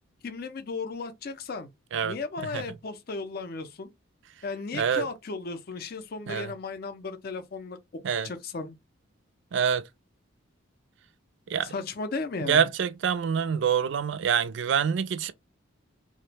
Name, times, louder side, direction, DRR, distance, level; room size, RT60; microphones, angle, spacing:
voice 1, 0.2-1.7 2.0-3.9 4.4-8.8 11.6-12.7, left 4 dB, 50° left, 0.5 m, -35 dB
voice 2, 4.7-5.1 6.3-6.5 8.0-8.3 9.5-9.8 11.5-11.7 12.5-15.3, right 7 dB, 65° right, 0.3 m, -26 dB
2.9 x 2.1 x 3.2 m
head